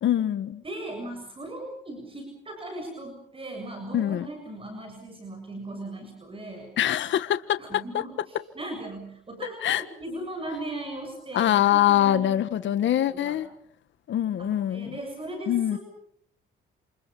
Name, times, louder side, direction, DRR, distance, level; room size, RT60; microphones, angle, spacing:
voice 1, 0.0-0.6 3.9-4.3 6.8-8.0 9.6-9.8 11.3-13.5 14.1-15.0 15.5-15.8, left 11 dB, 70° left, 12 dB, 1.5 m, -24 dB
voice 2, 0.6-6.7 7.6-12.3 12.6-13.4 14.4-15.8, right 1 dB, 25° right, 4 dB, 7.4 m, -38 dB
28.5 x 28.0 x 5.5 m, 0.66 s
cardioid pair, 90°, 20 cm